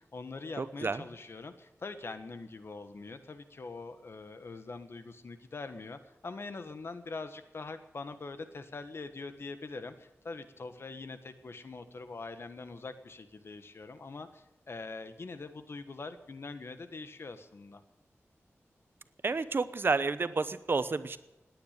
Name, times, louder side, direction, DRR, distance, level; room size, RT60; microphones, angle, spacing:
voice 1, 0.0-17.8, left 3 dB, 55° left, 10 dB, 1.4 m, -43 dB
voice 2, 0.6-1.0 19.2-21.2, right 4 dB, 50° right, 13 dB, 0.9 m, -30 dB
19.0 x 9.8 x 6.7 m, 0.98 s
wide cardioid pair, 110°, 5 cm